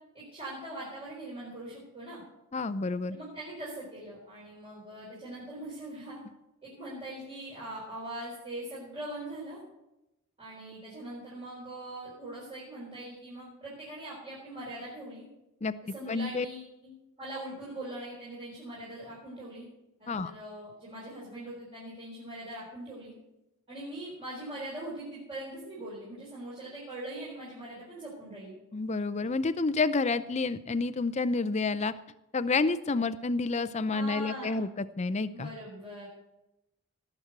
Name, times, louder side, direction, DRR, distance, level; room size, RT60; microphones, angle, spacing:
voice 1, 0.1-2.2 3.1-6.2 6.6-9.6 10.4-15.3 15.9-16.9 17.2-19.7 20.0-23.1 23.7-28.5 33.9-34.7 35.3-36.1, right 1 dB, 25° right, -8 dB, 4.2 m, -41 dB
voice 2, 2.5-3.2 15.6-15.7 16.1-16.5 20.1-20.3 28.7-31.9 32.3-35.5, left 3 dB, 30° left, 14 dB, 0.5 m, -29 dB
18.0 x 6.1 x 7.9 m, 0.92 s
head